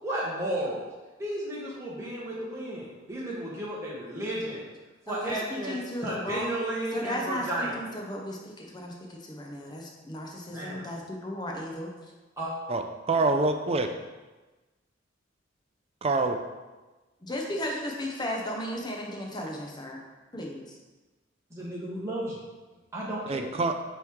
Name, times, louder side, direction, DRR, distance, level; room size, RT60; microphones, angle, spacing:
voice 1, 0.0-0.8 1.2-4.6 5.1-5.7 6.0-7.8 10.5-10.9 12.4-12.5 21.5-22.4 22.9-23.5, right 1 dB, 15° right, -7 dB, 1.0 m, -33 dB
voice 2, 5.1-6.5 6.9-11.9 17.2-20.0 20.3-20.8, left 1 dB, 20° left, 0 dB, 0.6 m, -35 dB
voice 3, 12.7-13.9 16.0-16.4 23.3-23.7, right 3 dB, 30° right, 6 dB, 0.4 m, -26 dB
9.0 x 3.1 x 3.5 m, 1.2 s
head